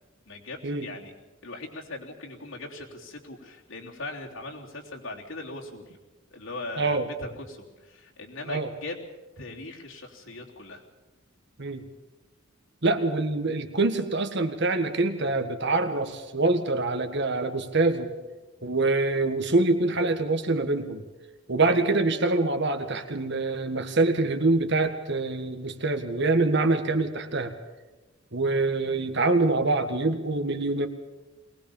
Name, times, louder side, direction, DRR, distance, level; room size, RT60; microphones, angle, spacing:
voice 1, 0.2-1.1 1.4-6.0 6.3-9.0 9.4-10.8, left 2 dB, 75° left, -1 dB, 3.5 m, -40 dB
voice 2, 12.8-18.1 18.6-21.0 21.5-27.5 28.3-30.9, right 2 dB, 55° right, 7 dB, 1.8 m, -25 dB
22.5 x 19.5 x 7.2 m, 1.2 s
head